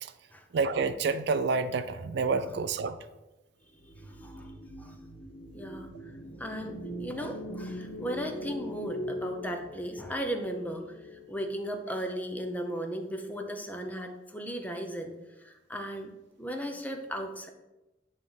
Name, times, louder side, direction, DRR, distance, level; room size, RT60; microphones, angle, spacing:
voice 1, 0.5-3.0, right 4 dB, 65° right, 11 dB, 0.4 m, -28 dB
sound 1, 3.8-12.1, equal, 55° left, 1.1 m, -41 dB
voice 2, 4.0-4.5 4.8-4.9 5.5-15.1 15.4-16.1 16.4-17.5, equal, 10° left, 4 dB, 0.8 m, -36 dB
9.2 x 3.2 x 5.6 m, 1.0 s
head